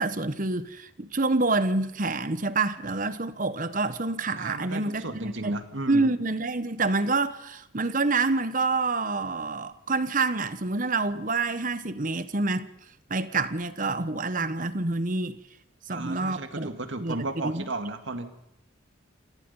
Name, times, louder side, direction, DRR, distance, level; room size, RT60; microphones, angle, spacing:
voice 1, 0.0-5.5 5.9-12.7 13.1-15.4 15.9-16.7 17.0-17.2 17.4-17.6, right 3 dB, 40° right, 1.1 m, -27 dB
voice 2, 4.4-6.1 15.9-18.3, right 2 dB, 70° right, 1.9 m, -34 dB
28.0 x 18.0 x 5.5 m
head